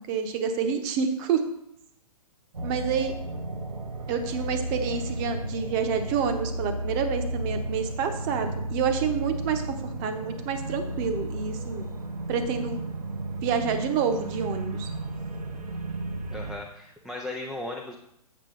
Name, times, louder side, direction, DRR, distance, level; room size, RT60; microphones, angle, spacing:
voice 1, 0.1-1.4 2.6-3.1 4.1-9.6 10.0-11.9 12.3-12.8 13.4-14.9, right 6 dB, 30° right, 7 dB, 0.9 m, -28 dB
sound 1, 2.5-16.6, right 1 dB, 75° right, 1.1 m, -33 dB
voice 2, 16.3-17.9, left 2 dB, ahead, 0 dB, 0.4 m, -36 dB
7.7 x 6.2 x 3.8 m, 0.78 s
figure-of-eight pair, 125°, 20 cm